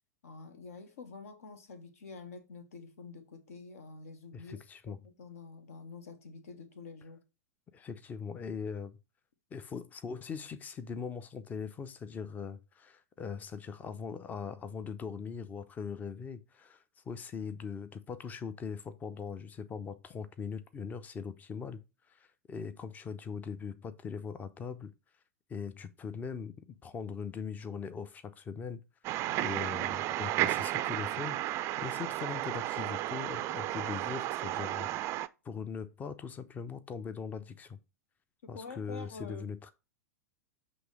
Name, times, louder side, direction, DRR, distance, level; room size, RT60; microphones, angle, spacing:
voice 1, 0.2-4.6 4.9-7.2 29.3-29.4 38.4-39.5, left 4 dB, 60° left, 1.3 m, -47 dB
voice 2, 4.3-5.0 7.7-9.0 9.5-21.8 22.1-24.9 25.5-37.8 38.5-39.7, left 6 dB, 20° left, 0.7 m, -41 dB
sound 1, 29.0-35.3, right 15 dB, 30° right, 0.4 m, -33 dB
8.0 x 3.1 x 4.9 m
figure-of-eight pair, 95°, 9 cm